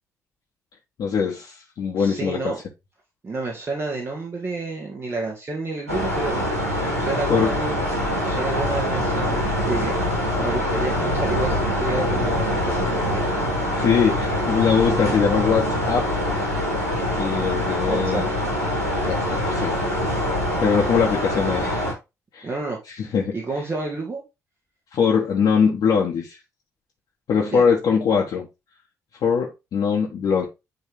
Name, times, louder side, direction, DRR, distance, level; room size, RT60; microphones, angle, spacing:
voice 1, 1.0-2.5 7.3-7.5 13.7-16.0 17.2-18.3 19.0-19.8 20.6-21.8 22.3-22.5 23.0-23.3 24.9-26.4 27.3-28.5 29.2-30.5, left 6 dB, 55° left, 1.5 m, -22 dB
voice 2, 1.9-2.6 3.2-6.5 7.0-10.0 10.3-13.2 17.9-18.2 22.4-22.8 23.3-24.2 27.4-27.7, right 3 dB, 30° right, 2.2 m, -30 dB
sound 1, 5.9-21.9, left 1 dB, 85° right, 1.4 m, -24 dB
10.0 x 3.4 x 3.6 m
figure-of-eight pair, 40°, 8 cm